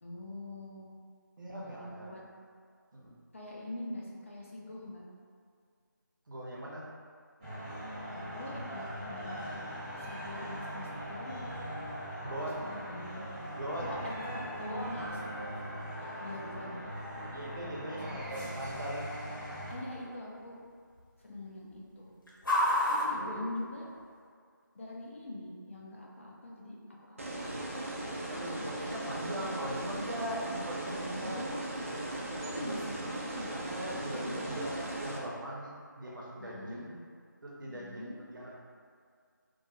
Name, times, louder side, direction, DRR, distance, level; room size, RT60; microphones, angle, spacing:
voice 1, 0.0-0.9 1.6-2.2 3.3-5.0 8.1-9.5 10.0-11.5 12.6-13.3 13.8-16.8 17.1-17.2 17.6-17.7 18.0-18.5 19.7-20.6 21.2-22.1 22.9-23.9 24.7-27.7 31.2-31.6 32.4-33.6 34.0-34.7 36.4-36.8 37.7-38.2, left 1 dB, 40° left, -3 dB, 0.4 m, -44 dB
voice 2, 1.4-2.2 2.9-3.2 6.3-6.8 12.2-12.7 13.5-14.1 17.3-19.1 23.1-23.5 28.3-31.4 32.6-33.1 33.5-37.0 37.4-38.5, right 1 dB, 70° right, -4 dB, 0.7 m, -40 dB
sound 1, 7.4-19.7, equal, 15° right, 0.8 m, -40 dB
sound 2, 9.4-24.3, left 1 dB, 80° left, 0.9 m, -40 dB
sound 3, 27.2-35.2, right 1 dB, 40° right, 0.3 m, -38 dB
2.3 x 2.2 x 2.9 m, 2.1 s
figure-of-eight pair, 165°, 11 cm